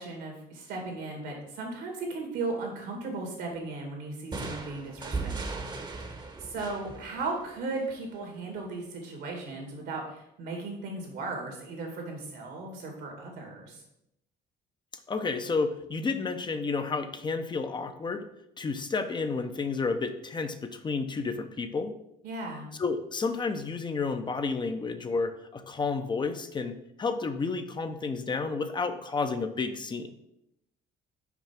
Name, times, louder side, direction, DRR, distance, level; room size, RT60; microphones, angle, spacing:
voice 1, 0.0-13.8 22.2-22.7, right 3 dB, 80° right, 1 dB, 2.4 m, -37 dB
sound 1, 4.3-8.0, right 3 dB, 25° right, 1.0 m, -37 dB
voice 2, 15.1-18.3 18.6-21.9 22.8-30.1, left 4 dB, 25° left, 8 dB, 0.6 m, -31 dB
5.9 x 4.6 x 5.9 m, 0.80 s
cardioid pair, 110°, 17 cm